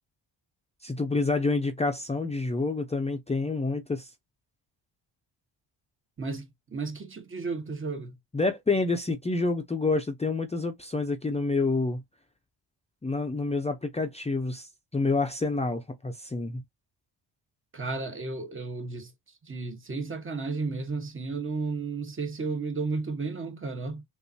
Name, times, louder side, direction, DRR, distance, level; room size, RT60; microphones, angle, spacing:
voice 1, 0.8-4.1 8.3-12.0 13.0-14.7 14.9-16.6, left 3 dB, 15° left, 0.7 m, -28 dB
voice 2, 6.2-8.1 17.7-19.1 19.5-24.0, right 4 dB, 25° right, 1.4 m, -33 dB
6.9 x 2.7 x 2.7 m
cardioid pair, 130°, 44 cm